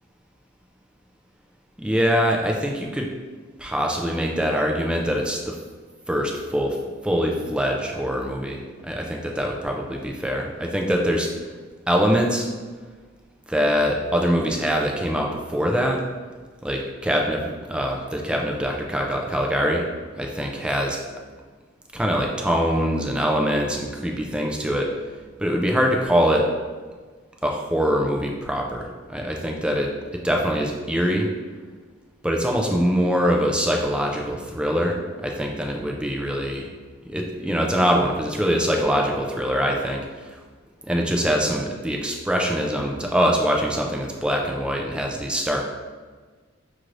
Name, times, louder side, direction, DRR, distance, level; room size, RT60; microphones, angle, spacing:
voice 1, 1.8-3.1 3.6-5.6 6.1-6.8 7.0-11.3 11.9-12.5 13.5-16.0 16.6-19.9 20.2-21.0 21.9-24.9 25.4-26.5 27.4-31.3 32.2-36.7 37.1-40.0 40.9-45.7, equal, 5° right, 1 dB, 0.4 m, -23 dB
5.8 x 2.5 x 3.1 m, 1.4 s
head